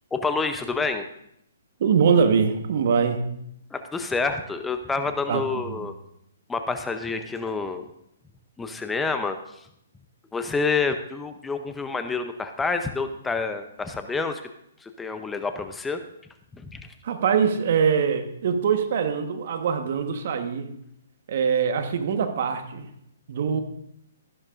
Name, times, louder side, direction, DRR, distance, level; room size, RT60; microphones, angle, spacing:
voice 1, 0.1-1.0 3.7-5.9 6.5-7.9 8.6-9.4 10.3-14.4 14.8-16.0 16.7-16.8, left 4 dB, 10° left, 8 dB, 0.6 m, -28 dB
voice 2, 1.8-3.3 5.3-5.9 17.0-20.7 21.3-22.9 23.3-23.6, right 6 dB, 55° right, 7 dB, 1.3 m, -23 dB
13.5 x 12.0 x 2.6 m, 0.75 s
hypercardioid pair, 135°, 0 cm